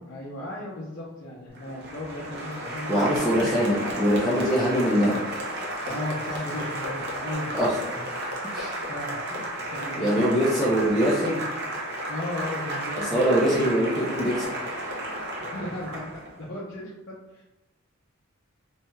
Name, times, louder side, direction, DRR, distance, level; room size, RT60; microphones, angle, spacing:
voice 1, 0.0-3.3 5.8-7.5 8.9-9.1 9.6-10.4 12.1-13.1 15.5-17.4, left 1 dB, 60° left, -7 dB, 0.6 m, -36 dB
Applause, 1.6-16.4, right 1 dB, 50° right, 0.6 m, -33 dB
voice 2, 2.9-5.2 7.5-7.7 8.5-8.9 9.3-9.4 10.0-11.5 13.0-14.5, equal, ahead, -9 dB, 0.5 m, -23 dB
3.2 x 2.6 x 2.2 m, 0.99 s
head